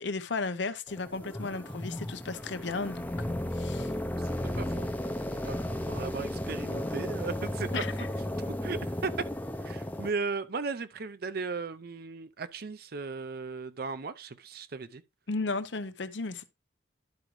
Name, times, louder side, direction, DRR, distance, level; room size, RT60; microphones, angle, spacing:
voice 1, 0.0-3.9 7.7-8.1 15.3-16.5, left 3 dB, 70° left, 0.8 m, -35 dB
sound 1, 0.9-10.1, left 1 dB, 10° left, 0.6 m, -34 dB
voice 2, 4.2-4.9 5.4-7.8 8.4-9.3 9.6-15.0, right 4 dB, 55° right, 0.5 m, -36 dB
11.5 x 5.1 x 3.1 m
head